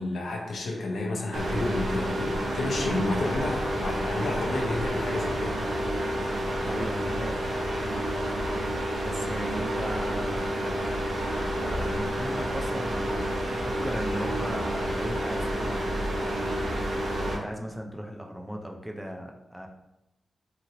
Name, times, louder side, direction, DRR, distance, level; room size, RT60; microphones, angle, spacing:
voice 1, 0.0-5.6, left 2 dB, 80° left, -1 dB, 0.6 m, -31 dB
sound 1, 1.3-17.4, equal, 85° right, 0.7 m, -29 dB
voice 2, 6.6-7.5 9.0-10.5 11.2-13.2 13.5-16.0 17.2-19.7, equal, 5° right, 1 dB, 0.4 m, -37 dB
2.9 x 2.6 x 2.7 m, 0.92 s
cardioid pair, 75°, 0 cm